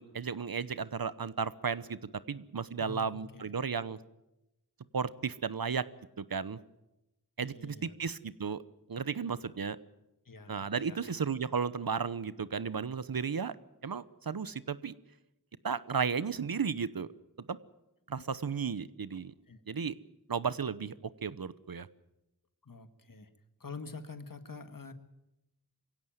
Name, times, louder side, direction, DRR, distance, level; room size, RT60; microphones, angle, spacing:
voice 1, 0.0-2.0 2.3-4.0 4.9-5.9 6.2-6.6 7.4-8.6 8.9-9.8 10.5-13.5 13.8-14.9 15.6-17.1 17.4-17.6 18.1-19.3 19.7-19.9 20.3-20.9 21.2-21.9, right 6 dB, 70° right, 16 dB, 0.9 m, -34 dB
voice 2, 2.8-3.6 7.4-8.2 10.3-11.2 18.2-18.3 19.5-19.6 22.6-23.3 23.6-24.9, left 3 dB, 60° left, 9 dB, 1.9 m, -47 dB
23.5 x 16.5 x 9.2 m, 0.92 s
wide cardioid pair, 65°, 37 cm